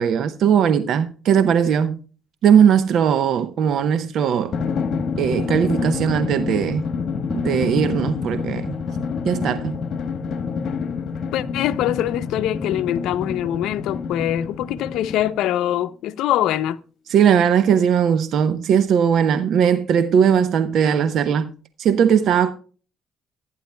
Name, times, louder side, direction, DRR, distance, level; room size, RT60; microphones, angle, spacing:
voice 1, 0.0-2.0 2.4-4.6 5.2-6.8 7.3-8.7 9.2-9.8 17.1-21.5 21.8-22.5, right 8 dB, 65° right, 0.8 m, -18 dB
Drum, 4.5-15.6, left 5 dB, 60° left, 1.2 m, -27 dB
voice 2, 11.3-16.8, left 12 dB, 80° left, 0.6 m, -23 dB
14.5 x 9.7 x 2.2 m
cardioid pair, 90°, 0 cm